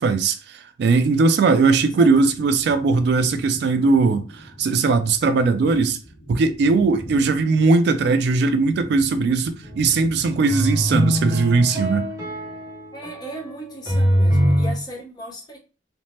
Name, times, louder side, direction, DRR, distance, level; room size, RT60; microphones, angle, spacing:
voice 1, 0.0-6.0 6.3-12.1, right 4 dB, 65° right, 0.3 m, -19 dB
sound 1, 1.7-11.8, equal, 70° left, 1.3 m, -43 dB
voice 2, 7.1-7.4 12.9-15.6, right 1 dB, 25° left, 0.9 m, -36 dB
sound 2, 9.6-9.8 10.5-14.7, equal, 20° right, 0.8 m, -23 dB
3.1 x 2.0 x 2.7 m
head